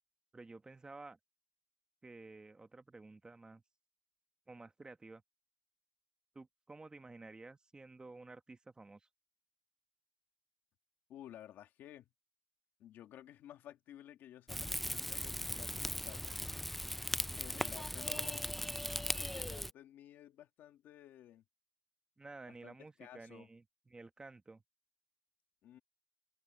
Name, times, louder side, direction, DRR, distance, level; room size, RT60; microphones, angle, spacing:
voice 1, 0.3-1.2 2.0-3.6 4.5-5.2 6.3-9.1 22.2-24.6, right 3 dB, 25° right, 1.4 m, -53 dB
voice 2, 11.1-12.1 12.8-16.6 17.3-18.5 19.2-21.4 22.5-23.5 25.6-25.8, left 11 dB, 90° left, 2.5 m, -54 dB
Rain / Fire, 14.5-19.7, equal, 5° left, 0.4 m, -38 dB
cardioid pair, 80°, 3 cm